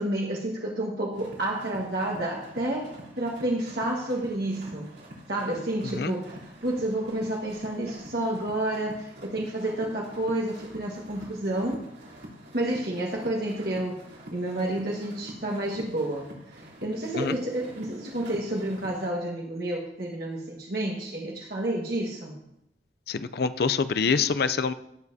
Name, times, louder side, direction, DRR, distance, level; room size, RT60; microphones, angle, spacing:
voice 1, 0.0-2.9 3.2-4.9 5.3-11.8 12.5-14.0 14.3-16.2 16.8-22.3, right 1 dB, 60° right, -2 dB, 1.5 m, -30 dB
sound 1, 1.1-19.1, equal, 80° right, 3.3 m, -46 dB
voice 2, 23.1-24.7, left 5 dB, 60° left, 13 dB, 0.5 m, -26 dB
17.5 x 7.3 x 2.7 m, 0.81 s
head